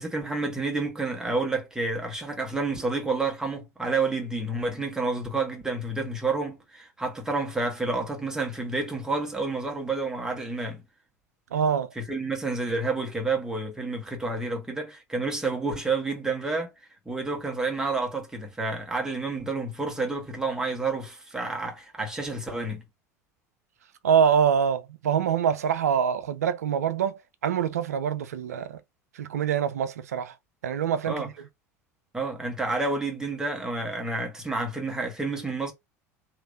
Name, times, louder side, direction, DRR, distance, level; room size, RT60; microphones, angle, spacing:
voice 1, 0.0-10.8 11.9-16.7 17.0-22.8 31.1-31.3 32.1-35.7, right 3 dB, 5° right, 1.5 m, -29 dB
voice 2, 11.5-11.9 24.0-28.8 29.2-30.3 30.6-31.2, right 8 dB, 75° right, 0.5 m, -25 dB
3.1 x 3.0 x 2.6 m
figure-of-eight pair, 75°, 9 cm